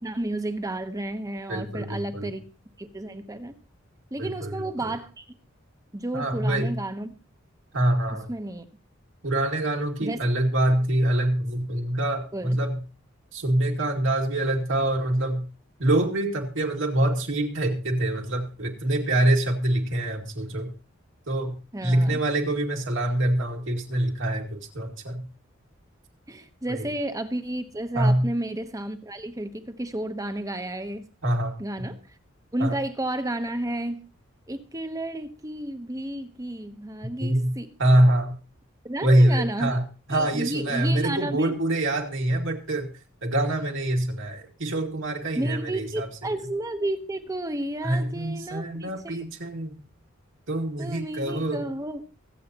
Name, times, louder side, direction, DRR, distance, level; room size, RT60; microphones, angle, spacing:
voice 1, 0.0-2.4 2.8-3.5 4.1-5.2 5.9-7.1 8.3-8.6 10.0-10.2 12.3-12.6 21.7-22.2 26.3-31.1 31.6-32.0 32.5-34.0 34.5-37.7 38.8-39.7 40.1-41.5 45.4-49.2 50.8-52.0, right 1 dB, 15° right, 9 dB, 1.0 m, -32 dB
voice 2, 1.5-2.3 4.2-4.9 6.1-6.8 7.7-8.3 9.2-12.8 13.3-15.4 15.8-20.7 21.3-21.6 21.8-25.3 26.7-26.9 27.9-28.3 31.2-31.6 32.6-32.8 37.2-37.5 37.8-38.3 39.0-39.8 40.1-42.9 43.2-46.4 47.8-49.8 50.5-51.7, right 1 dB, 70° right, 2 dB, 2.4 m, -25 dB
23.5 x 8.5 x 2.9 m, 0.33 s
head